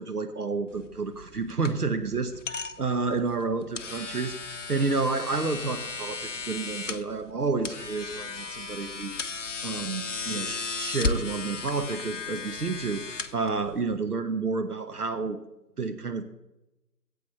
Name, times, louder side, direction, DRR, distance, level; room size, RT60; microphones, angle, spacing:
voice 1, 0.0-15.4 15.8-16.3, right 4 dB, 65° right, 7 dB, 1.1 m, -30 dB
sound 1, 0.7-14.0, left 4 dB, 50° left, 0.7 m, -36 dB
14.5 x 8.4 x 4.4 m, 0.96 s
figure-of-eight pair, 145°, 49 cm